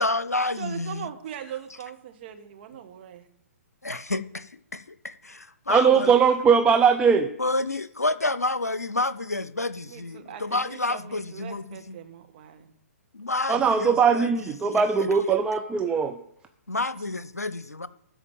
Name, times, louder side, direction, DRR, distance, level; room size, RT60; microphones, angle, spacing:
voice 1, 0.0-1.1 3.8-6.1 7.4-12.0 13.1-14.8 16.7-17.9, left 2 dB, 90° left, 16 dB, 0.7 m, -29 dB
voice 2, 0.6-3.3 9.8-12.7, right 9 dB, 40° right, 6 dB, 1.5 m, -40 dB
voice 3, 5.7-7.3 13.5-16.2, right 6 dB, 10° right, 6 dB, 0.5 m, -20 dB
13.5 x 4.9 x 8.8 m, 0.77 s
figure-of-eight pair, 125°, 8 cm